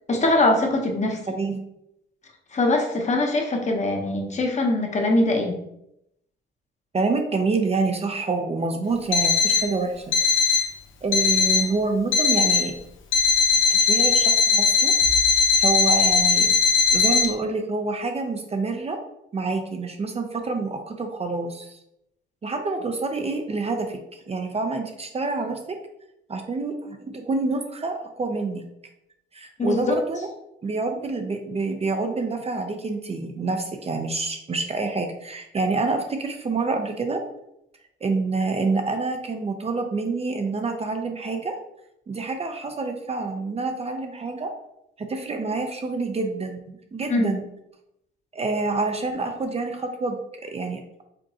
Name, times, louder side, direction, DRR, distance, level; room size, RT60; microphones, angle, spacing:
voice 1, 0.1-1.3 2.5-5.6 29.6-29.9 47.1-47.3, left 2 dB, 35° left, 2 dB, 1.0 m, -22 dB
voice 2, 6.9-10.1 11.0-12.7 13.7-14.9 15.6-16.5 16.9-19.0 19.3-21.8 22.4-25.8 26.3-28.6 29.3-30.2 30.6-37.2 38.0-41.6 42.1-44.5 45.0-47.4 48.3-50.8, right 3 dB, 30° right, 5 dB, 0.6 m, -27 dB
Alarm, 9.1-9.7 10.1-10.7 11.1-11.7 12.1-12.7 13.1-17.3, left 5 dB, 75° left, 0.9 m, -19 dB
5.1 x 3.5 x 2.8 m, 0.81 s
cardioid pair, 90°, 20 cm